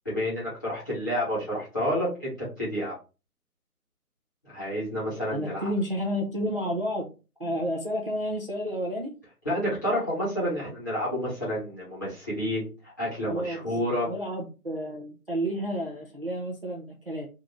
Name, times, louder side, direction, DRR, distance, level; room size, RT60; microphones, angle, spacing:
voice 1, 0.0-2.9 4.4-5.7 9.4-14.1, equal, 10° left, -9 dB, 0.9 m, -29 dB
voice 2, 5.3-7.1 7.4-9.1 13.3-13.6 14.0-17.3, equal, 40° right, 0 dB, 0.4 m, -31 dB
3.6 x 2.5 x 2.9 m, 0.31 s
hypercardioid pair, 165°, 46 cm